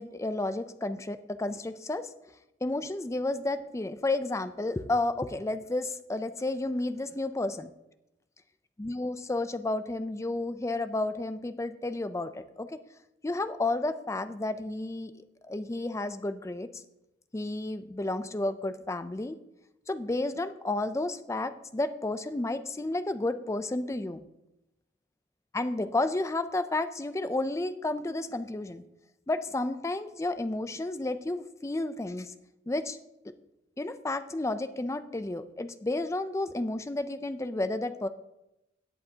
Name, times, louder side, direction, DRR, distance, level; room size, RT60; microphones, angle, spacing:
voice 1, 0.0-2.1 2.6-7.7 8.8-12.8 13.2-15.1 15.4-16.7 17.3-19.4 19.9-24.3 25.5-28.8 29.3-32.3 32.7-33.0 33.2-33.3 33.8-38.1, left 2 dB, 15° left, 11 dB, 0.4 m, -31 dB
16.5 x 8.1 x 2.8 m, 0.91 s
head